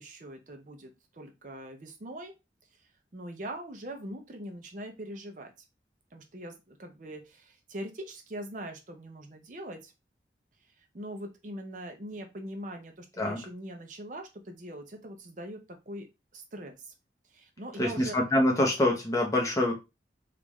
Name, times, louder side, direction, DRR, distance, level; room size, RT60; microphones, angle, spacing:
voice 1, 0.0-2.3 3.1-5.5 6.1-9.9 10.9-16.1 16.3-16.9 17.3-18.2, right 1 dB, 45° right, 4 dB, 0.5 m, -42 dB
voice 2, 17.8-19.7, left 1 dB, 20° left, 0 dB, 0.8 m, -25 dB
3.5 x 2.4 x 3.0 m, 0.25 s
head